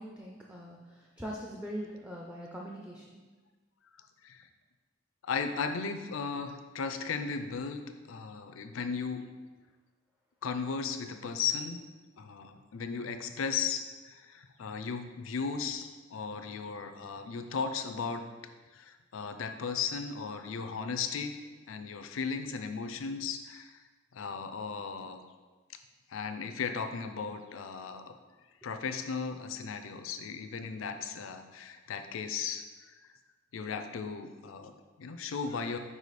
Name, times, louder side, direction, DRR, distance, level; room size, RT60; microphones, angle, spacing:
voice 1, 0.0-3.2, equal, 5° right, -2 dB, 0.4 m, -42 dB
voice 2, 5.2-7.8 8.1-9.2 10.4-11.8 12.2-18.2 18.7-21.4 21.7-23.8 24.1-25.2 26.1-28.1 28.6-32.6 33.5-35.8, left 5 dB, 75° left, 8 dB, 0.5 m, -36 dB
4.9 x 4.9 x 4.1 m, 1.3 s
head